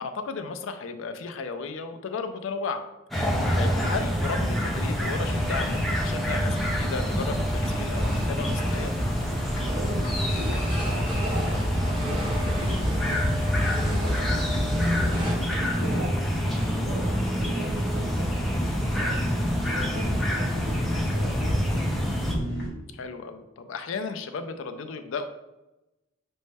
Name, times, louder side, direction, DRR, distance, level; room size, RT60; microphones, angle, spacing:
voice 1, 0.0-2.8 3.5-8.9 15.6-15.8 22.9-25.2, left 4 dB, 85° left, 7 dB, 0.4 m, -34 dB
sound 1, 3.1-22.3, equal, ahead, 0.5 m, -27 dB
sound 2, 3.7-22.7, equal, 50° left, 0.8 m, -37 dB
sound 3, 5.3-15.3, equal, 25° right, 0.8 m, -30 dB
voice 2, 9.5-14.7 15.5-19.3 19.7-22.0, right 1 dB, 75° right, -2 dB, 0.6 m, -40 dB
5.2 x 2.1 x 3.3 m, 0.98 s
head